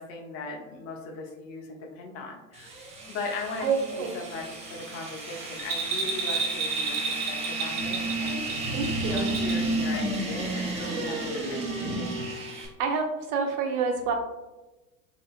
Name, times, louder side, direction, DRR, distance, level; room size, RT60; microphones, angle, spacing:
voice 1, 0.0-2.7 3.1-12.2, left 3 dB, 30° left, 1 dB, 0.5 m, -38 dB
sound 1, 2.5-12.7, right 2 dB, 15° right, 0.5 m, -32 dB
voice 2, 3.6-4.1 8.7-9.4 12.8-14.1, right 5 dB, 70° right, 3 dB, 0.7 m, -28 dB
Bell, 5.6-9.7 10.0-10.1, right 4 dB, 35° right, 0.9 m, -31 dB
2.9 x 2.4 x 2.3 m, 1.1 s
hypercardioid pair, 90°, 47 cm